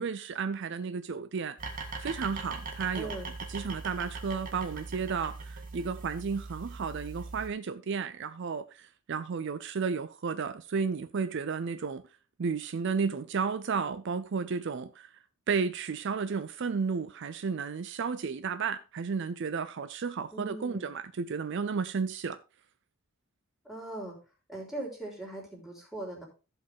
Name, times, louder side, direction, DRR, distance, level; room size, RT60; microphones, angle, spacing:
voice 1, 0.0-1.6 2.0-3.1 3.5-12.0 12.4-15.1 15.5-22.4, right 5 dB, 55° right, 0.5 m, -33 dB
sound 1, 1.6-7.5, right 3 dB, 40° right, 1.8 m, -41 dB
voice 2, 2.9-3.3 20.3-20.9 23.7-24.2 24.5-26.2, right 1 dB, ahead, 3.7 m, -40 dB
15.0 x 5.5 x 3.5 m
head